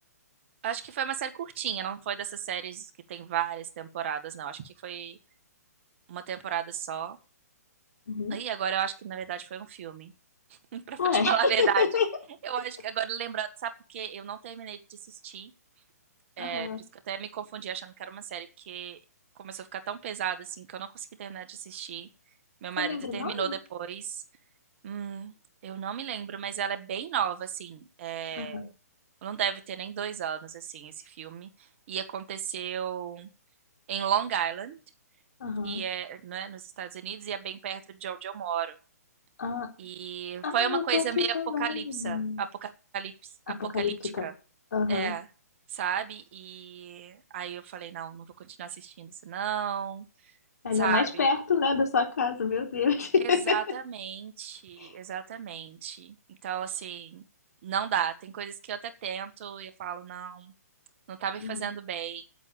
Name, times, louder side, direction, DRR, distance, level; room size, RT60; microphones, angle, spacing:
voice 1, 0.6-5.2 6.1-7.2 8.3-10.1 10.7-11.8 12.4-15.5 16.4-16.7 17.1-19.0 19.4-22.1 22.6-24.2 24.8-25.3 25.6-28.7 29.2-31.5 31.9-33.3 33.9-34.8 35.6-38.8 39.8-43.3 43.7-44.3 44.9-45.3 45.7-50.0 50.8-51.2 53.2-57.2 57.6-60.5 61.1-62.2, right 9 dB, 45° right, 8 dB, 1.7 m, -34 dB
voice 2, 8.1-8.4 11.0-11.3 11.6-12.1 16.4-16.8 22.8-23.5 28.4-28.7 35.4-35.8 39.4-39.7 40.4-41.0 41.3-42.4 43.5-44.3 44.7-45.1 50.6-53.6 54.8-54.9 61.4-61.7, left 5 dB, 70° left, 3 dB, 3.6 m, -28 dB
8.8 x 8.2 x 8.7 m, 0.37 s
hypercardioid pair, 140°, 9 cm